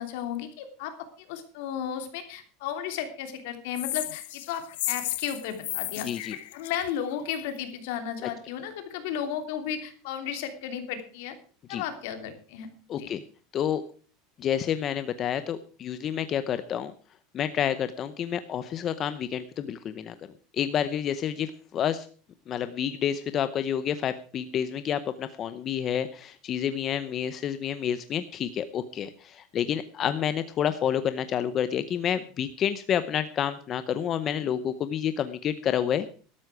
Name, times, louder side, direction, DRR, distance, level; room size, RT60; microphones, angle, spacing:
voice 1, 0.0-6.1 6.5-11.4 11.7-13.1, left 9 dB, 65° left, 7 dB, 2.9 m, -34 dB
sound 1, 3.7-7.6, left 17 dB, 85° left, 0.7 m, -34 dB
voice 2, 6.0-6.4 8.2-8.3 11.7-11.8 12.9-13.2 13.5-13.8 14.4-16.9 17.3-20.1 20.5-22.1 22.5-36.1, left 9 dB, 30° left, 12 dB, 0.7 m, -29 dB
13.0 x 13.0 x 4.8 m, 0.41 s
supercardioid pair, 165°, 0 cm